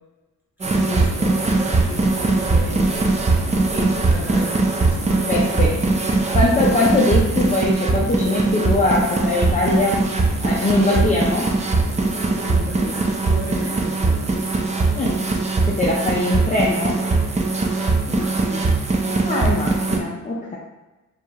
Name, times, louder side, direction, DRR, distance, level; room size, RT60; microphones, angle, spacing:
sound 1, 0.6-20.0, right 3 dB, 20° right, 0.4 m, -20 dB
voice 1, 0.7-3.0 3.7-5.7 10.7-11.1 12.2-14.4 16.1-16.2 18.1-18.7, left 1 dB, 5° right, -7 dB, 1.5 m, -34 dB
voice 2, 5.3-5.7 6.3-10.0 10.4-11.5 14.9-15.1 15.6-17.0 19.2-20.6, left 2 dB, 25° left, -5 dB, 0.5 m, -21 dB
4.7 x 2.4 x 2.8 m, 1.1 s
wide cardioid pair, 105°, 32 cm